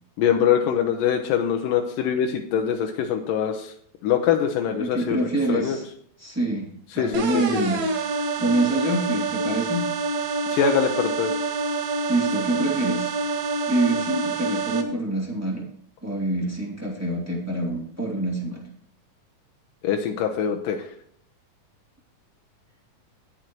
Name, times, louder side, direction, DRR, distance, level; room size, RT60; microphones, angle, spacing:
voice 1, 0.2-3.7 4.0-5.8 6.9-7.4 10.5-11.3 19.8-20.9, left 8 dB, 80° left, 3 dB, 2.5 m, -23 dB
voice 2, 4.8-5.8 6.2-7.8 8.4-9.9 12.1-13.1 13.7-15.7 16.0-18.6, right 2 dB, 5° right, -3 dB, 2.2 m, -26 dB
sound 1, 7.1-14.8, right 3 dB, 60° right, 2.9 m, -27 dB
19.0 x 6.5 x 3.1 m, 0.63 s
omnidirectional pair, 4.0 m